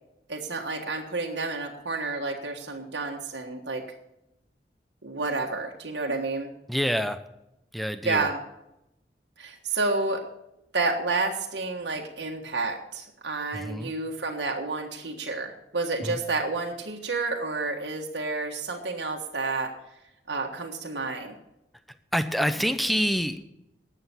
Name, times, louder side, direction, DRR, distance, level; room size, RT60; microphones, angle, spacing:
voice 1, 0.3-3.8 5.0-6.5 8.0-8.4 9.4-10.2 10.7-19.7 20.3-21.4, right 3 dB, 80° right, 1 dB, 1.6 m, -30 dB
voice 2, 6.7-7.2 7.7-8.3 13.5-13.9 16.0-16.2 22.1-23.4, equal, ahead, 10 dB, 0.7 m, -26 dB
12.0 x 8.2 x 7.0 m, 0.87 s
head